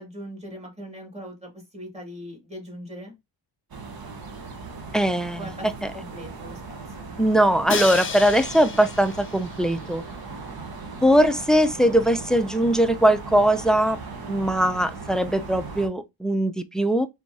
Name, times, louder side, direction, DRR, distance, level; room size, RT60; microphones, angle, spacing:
voice 1, 0.0-3.1 5.4-7.1, equal, 15° right, 2.3 m, -40 dB
sound 1, 3.7-15.9, right 4 dB, 50° right, 1.2 m, -38 dB
voice 2, 4.9-5.5 7.2-10.0 11.0-14.0 14.3-17.1, right 1 dB, ahead, 0.4 m, -20 dB
Crash cymbal, 7.7-9.7, left 5 dB, 25° left, 0.8 m, -32 dB
4.4 x 3.6 x 2.8 m
cardioid pair, 95°, 45 cm